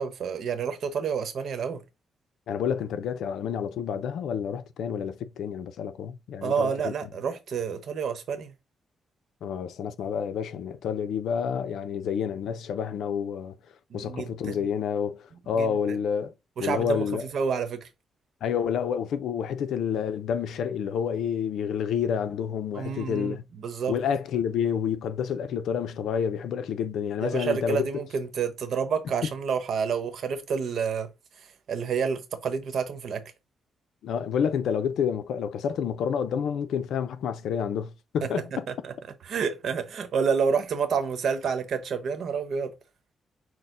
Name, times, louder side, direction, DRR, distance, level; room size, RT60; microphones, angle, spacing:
voice 1, 0.0-1.8 6.4-8.5 13.9-14.6 15.5-16.0 16.6-17.9 22.7-24.0 27.2-31.1 31.4-33.2 38.2-38.3 38.8-38.9 39.2-42.7, right 6 dB, 65° right, 1.0 m, -29 dB
voice 2, 2.5-6.9 9.4-13.6 13.9-16.3 16.6-17.2 18.4-23.4 23.9-27.9 34.0-38.7, left 7 dB, 85° left, 0.5 m, -29 dB
6.4 x 2.2 x 3.8 m
cardioid pair, 110°, 0 cm